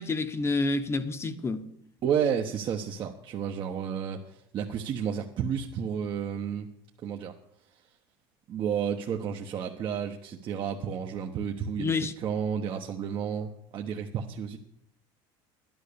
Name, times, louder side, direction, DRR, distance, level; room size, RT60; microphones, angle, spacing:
voice 1, 0.0-1.6 11.8-12.1, left 3 dB, 25° left, 1.1 m, -28 dB
voice 2, 2.0-6.7 7.0-7.3 8.5-14.6, right 7 dB, 45° right, 1.1 m, -31 dB
12.0 x 11.0 x 6.9 m
supercardioid pair, 110°, 11 cm